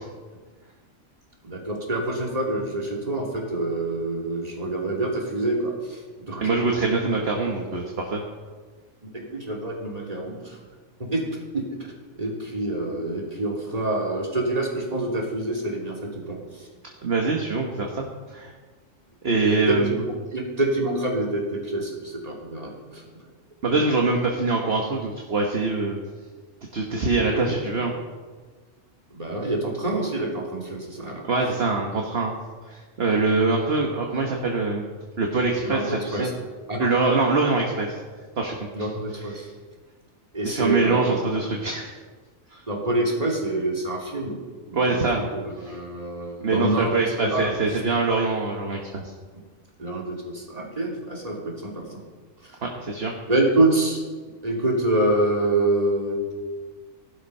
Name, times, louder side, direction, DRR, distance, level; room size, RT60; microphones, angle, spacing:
voice 1, 1.4-6.6 9.0-10.6 11.0-11.2 11.5-11.9 12.2-16.7 19.4-23.0 27.3-27.7 29.1-31.2 35.6-36.3 36.7-36.9 37.5-37.6 38.7-39.5 40.3-41.2 42.7-44.4 44.7-46.9 47.2-47.5 49.8-51.9 52.4-52.6 53.3-54.0 54.4-56.3, right 2 dB, 30° right, -2 dB, 2.9 m, -26 dB
voice 2, 6.4-8.2 17.0-18.5 19.2-20.0 23.6-26.0 26.7-27.9 31.2-32.3 32.7-34.8 35.2-36.3 36.8-37.9 38.4-38.6 39.3-39.5 40.4-41.9 42.5-42.6 44.7-45.2 46.4-49.1 52.6-53.1, right 3 dB, 50° right, 1 dB, 1.6 m, -24 dB
15.5 x 12.0 x 5.5 m, 1.5 s
omnidirectional pair, 1.4 m